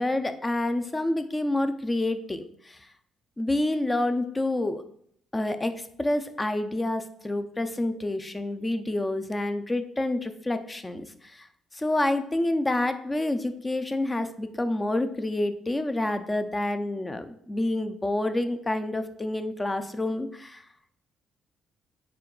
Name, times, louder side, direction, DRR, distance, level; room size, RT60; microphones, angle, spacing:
voice 1, 0.0-2.9 3.4-4.8 5.3-11.5 11.7-20.6, left 1 dB, 20° left, 9 dB, 0.4 m, -28 dB
4.5 x 2.3 x 3.7 m, 0.67 s
cardioid pair, 90°, 0 cm